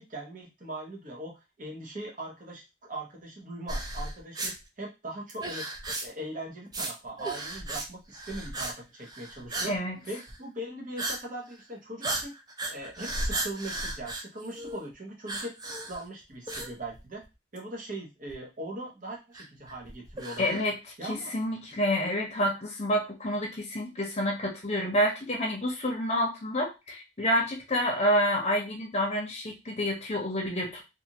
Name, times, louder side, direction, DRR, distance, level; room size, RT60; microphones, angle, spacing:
voice 1, 0.0-5.7 6.0-9.8 10.0-12.3 12.7-17.2 17.5-20.6 21.0-21.3, right 1 dB, 45° right, -1 dB, 0.8 m, -40 dB
sound 1, 3.7-4.5 5.3-6.3 6.7-6.9 7.2-7.9 8.1-8.7 9.0-9.8 10.1-10.4 11.0-11.2 11.5-11.6 12.0-14.9 15.3-16.1 16.5-17.2 17.6-17.7 18.3-18.4 19.3-20.6, right 2 dB, 20° right, 0.4 m, -35 dB
voice 2, 20.4-20.7 21.0-30.8, equal, 35° left, 0 dB, 0.7 m, -28 dB
2.5 x 2.5 x 2.8 m, 0.26 s
head